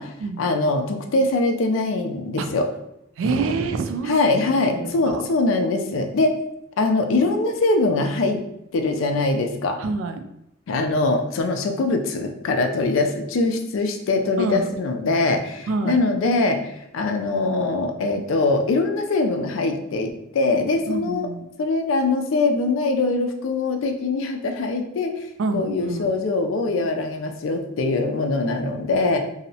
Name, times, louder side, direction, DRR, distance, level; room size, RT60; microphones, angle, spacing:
voice 1, 0.4-2.7 4.1-6.3 6.8-8.4 8.7-9.8 10.7-21.3 21.6-25.2 25.5-29.2, left 3 dB, 85° left, 5 dB, 0.4 m, -22 dB
voice 2, 3.2-4.2 4.7-5.2 9.8-10.2 14.4-14.7 15.7-16.0 20.9-21.5 25.4-26.1, right 3 dB, 80° right, 9 dB, 0.3 m, -26 dB
2.7 x 2.0 x 2.6 m, 0.81 s
head